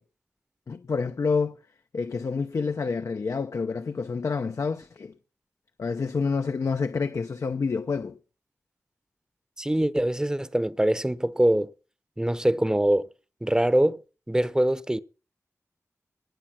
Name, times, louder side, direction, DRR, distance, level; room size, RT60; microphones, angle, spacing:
voice 1, 0.7-1.6 1.9-5.1 5.8-8.2, left 5 dB, 75° left, 0.8 m, -28 dB
voice 2, 9.6-11.7 12.2-13.1 13.4-14.0 14.3-15.0, right 1 dB, 15° right, 0.8 m, -23 dB
18.5 x 7.6 x 5.9 m
wide cardioid pair, 85°, 5 cm